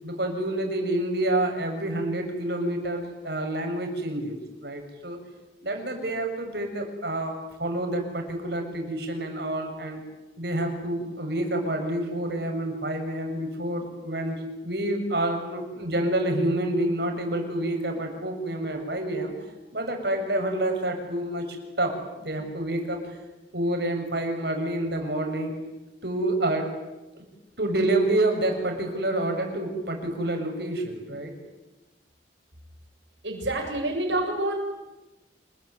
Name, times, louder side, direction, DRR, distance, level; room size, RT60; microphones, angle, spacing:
voice 1, 0.0-5.2 5.6-10.0 10.4-19.3 19.7-21.4 21.8-23.0 23.5-25.6 26.0-26.7 27.6-31.3, right 1 dB, 60° right, 3 dB, 7.2 m, -28 dB
voice 2, 33.2-34.6, right 1 dB, 75° right, 0 dB, 7.6 m, -27 dB
28.5 x 21.5 x 9.7 m, 1.1 s
head